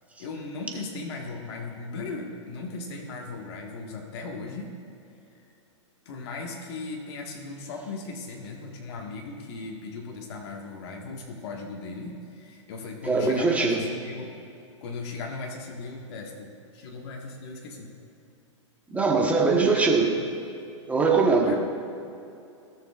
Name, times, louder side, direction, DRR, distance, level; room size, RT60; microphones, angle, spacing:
voice 1, 0.2-4.8 5.3-5.4 6.0-14.3 14.8-17.9 19.7-20.2 21.4-21.6, left 3 dB, 55° left, 0 dB, 1.6 m, -37 dB
voice 2, 13.0-13.8 18.9-20.1 20.9-21.6, right 4 dB, 10° right, -1 dB, 1.1 m, -21 dB
17.5 x 6.5 x 2.4 m, 2.7 s
hypercardioid pair, 135°, 16 cm